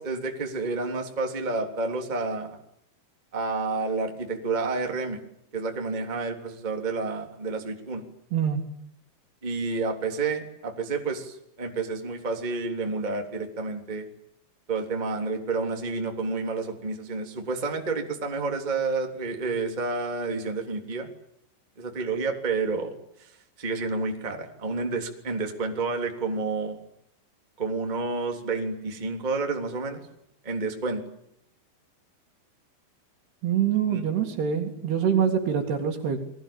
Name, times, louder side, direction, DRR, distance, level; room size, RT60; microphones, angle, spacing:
voice 1, 0.0-2.6 3.3-5.2 5.5-8.0 9.4-14.1 14.7-21.1 21.8-22.9 23.2-23.3 23.6-26.8 27.6-30.0 30.4-31.0 33.9-34.0, right 3 dB, 10° right, 3 dB, 2.5 m, -30 dB
voice 2, 8.3-8.6 33.4-36.2, right 8 dB, 65° right, -2 dB, 4.3 m, -25 dB
29.5 x 22.0 x 8.9 m, 0.75 s
omnidirectional pair, 5.3 m